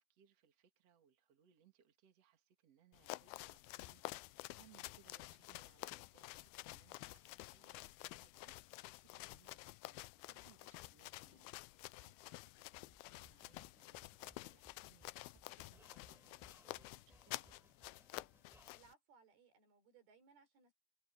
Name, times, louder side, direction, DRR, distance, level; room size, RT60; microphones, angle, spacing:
voice 1, 0.0-17.7, right 9 dB, 45° right, 3.0 m, -72 dB
sound 1, 2.9-18.9, left 21 dB, 85° left, 2.5 m, -51 dB
sound 2, 12.9-18.8, equal, ahead, 7.3 m, -68 dB
voice 2, 18.7-20.7, right 6 dB, 85° right, 5.9 m, -67 dB
omnidirectional pair, 4.3 m